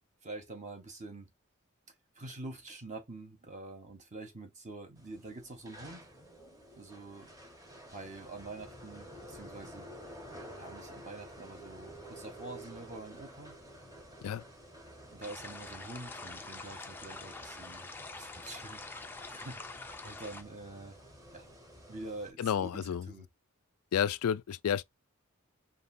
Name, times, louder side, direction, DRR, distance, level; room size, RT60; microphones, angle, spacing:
voice 1, 0.2-1.3 2.1-6.1 6.7-7.3 7.9-9.9 10.6-13.5 15.1-21.0 21.3-21.5 21.9-23.3, right 2 dB, 35° right, 1.1 m, -46 dB
sound 1, 5.0-22.3, equal, 15° right, 1.3 m, -51 dB
sound 2, 15.2-20.4, left 3 dB, 10° left, 0.4 m, -46 dB
voice 2, 22.4-23.1 23.9-24.8, left 8 dB, 85° left, 0.4 m, -30 dB
5.2 x 2.7 x 2.6 m
head